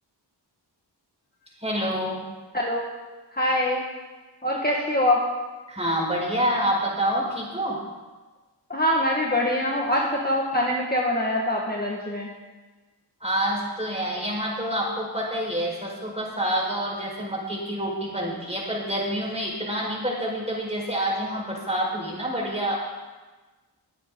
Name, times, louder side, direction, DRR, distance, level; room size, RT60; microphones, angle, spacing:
voice 1, 1.6-2.3 5.7-7.8 13.2-22.7, equal, 15° right, -3 dB, 4.7 m, -27 dB
voice 2, 3.3-3.8 4.4-5.2 8.7-12.3, left 1 dB, 20° left, -2 dB, 1.6 m, -24 dB
22.5 x 8.3 x 3.8 m, 1.3 s
wide cardioid pair, 50°, 44 cm